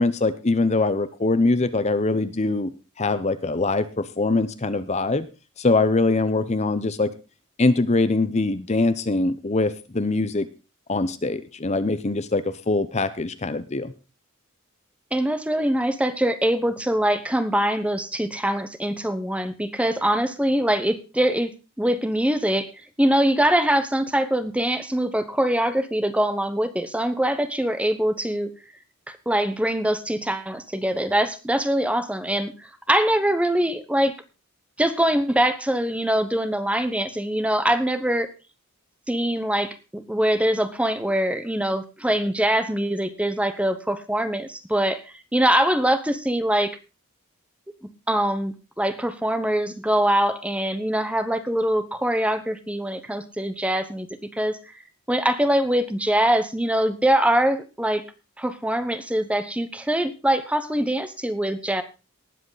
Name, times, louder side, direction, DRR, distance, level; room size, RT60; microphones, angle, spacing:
voice 1, 0.0-2.7 3.0-5.3 5.6-7.1 7.6-10.5 10.9-13.9, left 3 dB, 30° left, 12 dB, 0.7 m, -23 dB
voice 2, 15.1-21.5 21.8-22.7 23.0-28.5 29.1-34.1 34.8-38.3 39.1-45.0 45.3-46.8 48.1-54.1 54.3-54.6 55.1-58.0 58.4-61.8, right 1 dB, 5° right, 11 dB, 0.9 m, -23 dB
19.0 x 7.9 x 4.0 m, 0.31 s
head